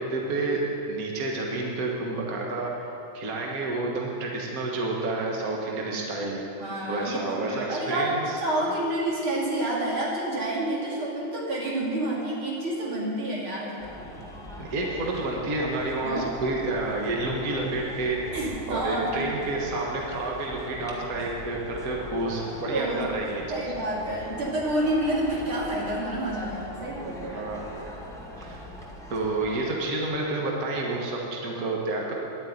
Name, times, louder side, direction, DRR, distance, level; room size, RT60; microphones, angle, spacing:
voice 1, 0.1-2.9 3.1-6.4 6.9-8.8 14.6-18.2 18.7-23.6 27.2-27.9 28.4-28.6 29.1-32.1, right 2 dB, 45° right, -1 dB, 1.9 m, -29 dB
voice 2, 6.6-8.1 8.4-13.8 16.0-16.3 18.3-19.3 22.7-23.1 23.5-27.4, right 1 dB, 80° right, -4 dB, 3.6 m, -29 dB
sound 1, 13.8-30.1, left 1 dB, ahead, 1.5 m, -41 dB
11.0 x 9.1 x 9.4 m, 2.8 s
omnidirectional pair, 2.3 m